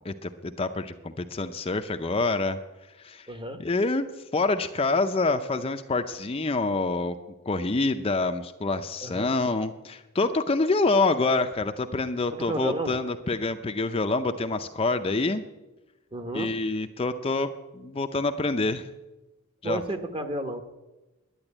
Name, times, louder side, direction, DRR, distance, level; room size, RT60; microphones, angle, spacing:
voice 1, 0.0-2.6 3.0-3.3 3.6-4.1 4.3-7.2 7.5-15.4 16.3-18.8 19.6-19.8, left 3 dB, 25° left, 7 dB, 0.5 m, -26 dB
voice 2, 3.3-3.6 9.0-9.3 12.3-13.0 16.1-16.6 19.6-20.6, right 1 dB, 25° right, 8 dB, 1.0 m, -32 dB
10.5 x 8.8 x 9.9 m, 1.1 s
head